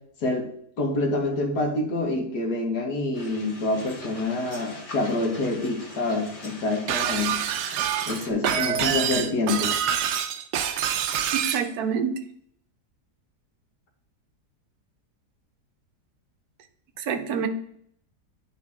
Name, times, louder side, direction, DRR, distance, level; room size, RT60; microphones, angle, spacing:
voice 1, 0.8-7.4 8.1-9.8, left 2 dB, 75° left, 2 dB, 1.9 m, -26 dB
sound 1, 3.1-8.3, left 2 dB, 25° left, 1.0 m, -42 dB
Shatter, 6.9-11.7, right 9 dB, 90° right, 1.2 m, -26 dB
voice 2, 11.3-12.2 17.0-17.5, right 7 dB, 70° right, 8 dB, 1.2 m, -27 dB
9.9 x 4.4 x 3.6 m, 0.67 s
omnidirectional pair, 1.7 m